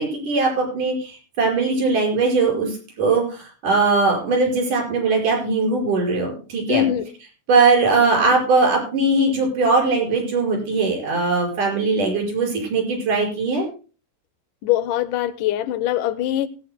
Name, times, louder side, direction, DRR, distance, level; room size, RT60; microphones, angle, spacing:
voice 1, 0.0-2.7 3.0-6.8 7.5-13.7, right 3 dB, 80° right, 7.1 m, -20 dB
voice 2, 6.7-7.1 14.6-16.5, left 12 dB, 90° left, 2.4 m, -22 dB
18.5 x 16.0 x 2.2 m
omnidirectional pair, 3.6 m